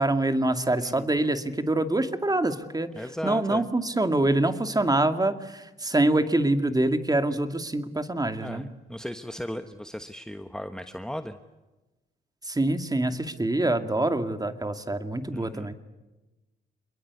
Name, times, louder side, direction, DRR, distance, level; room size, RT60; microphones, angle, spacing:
voice 1, 0.0-2.9 3.2-8.6 12.4-15.7, right 2 dB, 20° right, 8 dB, 2.4 m, -25 dB
voice 2, 0.8-1.1 2.9-3.7 8.4-11.4 14.0-14.1 15.3-15.7, equal, 5° left, 8 dB, 1.3 m, -36 dB
27.5 x 22.0 x 8.4 m, 1.1 s
supercardioid pair, 60°, 20 cm